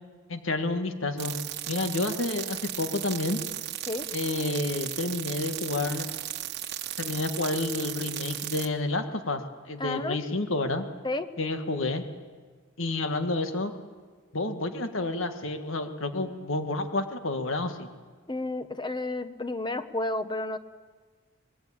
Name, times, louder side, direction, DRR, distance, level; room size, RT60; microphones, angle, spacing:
voice 1, 0.3-1.3 1.7-3.4 4.1-6.1 7.0-9.4 9.7-10.9 11.4-12.0 12.8-13.7 14.3-17.9, left 2 dB, 70° left, 7 dB, 1.7 m, -29 dB
sound 1, 1.2-8.7, right 13 dB, 50° right, 1.2 m, -35 dB
voice 2, 9.8-10.2 11.0-11.3 18.3-20.6, left 2 dB, 20° left, 11 dB, 1.0 m, -31 dB
25.0 x 20.5 x 8.8 m, 1.5 s
head